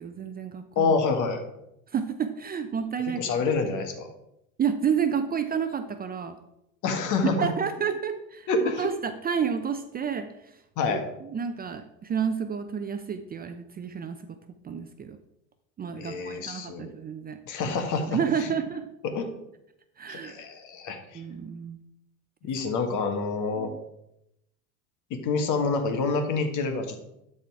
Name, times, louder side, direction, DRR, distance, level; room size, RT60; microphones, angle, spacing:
voice 1, 0.0-0.9 1.9-3.2 4.6-6.4 7.4-10.5 10.9-11.0 11.3-14.2 14.6-15.2 15.8-17.4 17.7-17.8 18.1-18.9 20.0-20.4 21.1-21.8 23.6-23.8, right 7 dB, 25° right, 8 dB, 0.6 m, -30 dB
voice 2, 0.7-1.4 3.1-4.1 6.8-7.5 8.5-8.9 10.8-11.0 16.0-16.9 17.4-18.5 19.0-19.3 20.1-21.2 22.4-23.7 25.1-27.0, left 4 dB, 50° left, 6 dB, 1.8 m, -27 dB
12.5 x 4.3 x 4.7 m, 0.84 s
hypercardioid pair, 90°, 40 cm